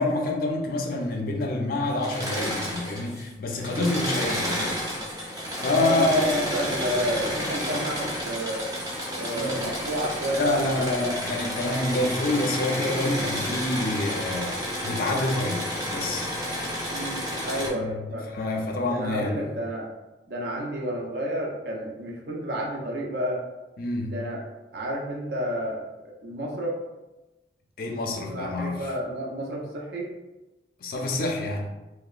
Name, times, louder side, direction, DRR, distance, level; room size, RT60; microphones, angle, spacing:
voice 1, 0.0-4.7 5.6-6.5 9.3-9.5 10.3-16.4 17.7-18.0 18.3-19.5 23.8-24.2 27.8-28.9 30.8-31.7, left 2 dB, 50° left, 2 dB, 0.4 m, -27 dB
Engine / Mechanisms, 1.9-3.3 3.5-17.7, equal, 20° right, 0.6 m, -31 dB
voice 2, 5.7-8.6 9.1-11.1 16.9-18.3 18.9-19.9 20.3-23.4 24.1-24.4 24.7-25.8 26.2-26.8 28.3-30.1, equal, 65° right, -1 dB, 0.5 m, -31 dB
2.8 x 2.1 x 2.3 m, 1.0 s
head